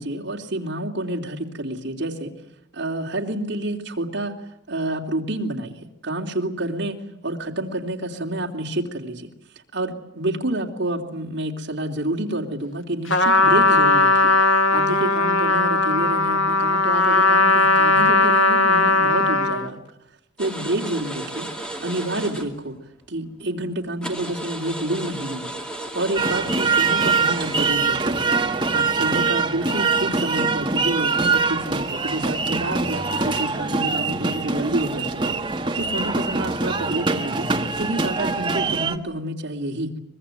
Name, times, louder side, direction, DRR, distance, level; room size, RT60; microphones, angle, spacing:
voice 1, 0.0-2.3 2.7-4.3 4.7-5.7 6.0-9.3 9.7-19.8 20.4-21.5 21.8-22.8 23.1-25.5 25.9-28.2 28.7-37.5 37.8-39.9, right 1 dB, 60° right, 1 dB, 3.2 m, -28 dB
Trumpet, 13.1-19.7, left 2 dB, 80° left, 2.0 m, -18 dB
sound 1, 20.4-22.8 23.0-23.1 23.6-23.7 24.0-27.7, right 1 dB, 5° left, 2.7 m, -34 dB
sound 2, 26.2-39.0, right 4 dB, 25° right, 1.5 m, -23 dB
24.5 x 21.5 x 9.3 m, 0.77 s
head